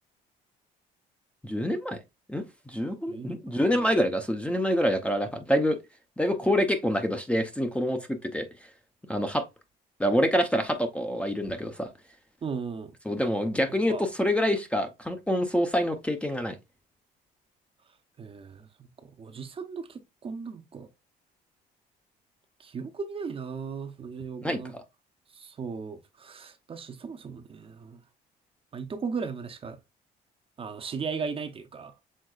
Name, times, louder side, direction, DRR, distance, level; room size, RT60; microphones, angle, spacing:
voice 1, 1.4-2.0 2.3-5.8 6.2-8.5 9.1-9.5 10.0-11.9 13.1-16.5 24.4-24.6, equal, 5° left, 0.7 m, -26 dB
voice 2, 3.1-3.4 3.7-3.9 12.4-12.9 13.7-14.0 18.2-18.9 19.2-20.9 22.6-24.7 25.3-28.0 28.7-29.8 30.6-31.9, right 5 dB, 35° right, 0.7 m, -37 dB
6.4 x 3.5 x 2.3 m
cardioid pair, 110°, 17 cm